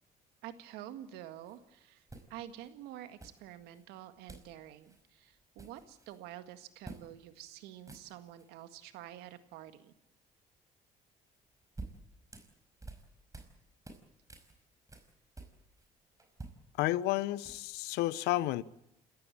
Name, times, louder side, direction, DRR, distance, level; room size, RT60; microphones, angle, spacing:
voice 1, 0.4-2.0 2.3-9.9, right 12 dB, 80° right, 1.8 m, -48 dB
sound 1, 1.4-1.6 2.1-2.7 3.2-3.8 4.3-4.6 4.8-5.0 5.3-6.2 6.8-7.1 7.4-7.5 7.8-8.5 11.3-13.6 13.8-15.9 16.2-17.8, right 3 dB, 20° right, 5.0 m, -50 dB
voice 2, 16.8-18.6, left 16 dB, 80° left, 0.8 m, -31 dB
27.0 x 14.5 x 8.8 m
supercardioid pair, 65°, 17 cm